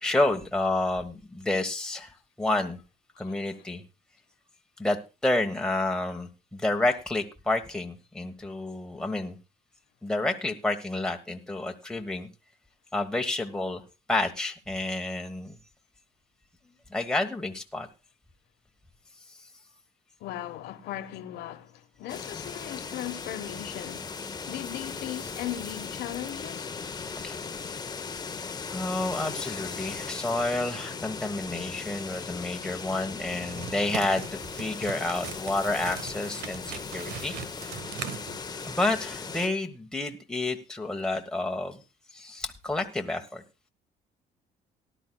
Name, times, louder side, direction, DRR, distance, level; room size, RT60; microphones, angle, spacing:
voice 1, 0.0-2.8 3.2-3.8 4.8-9.4 10.0-12.3 12.9-13.8 14.1-15.6 16.9-17.9 27.0-27.7 28.7-37.3 38.6-41.8 42.1-43.4, left 2 dB, 5° left, 1.2 m, -30 dB
voice 2, 3.1-3.5 20.2-24.1 24.5-26.7, left 13 dB, 80° left, 1.3 m, -38 dB
sound 1, 22.1-39.5, left 5 dB, 25° left, 0.8 m, -38 dB
sound 2, 33.3-38.9, right 8 dB, 75° right, 1.2 m, -40 dB
18.5 x 11.0 x 2.3 m
cardioid pair, 110°, 17 cm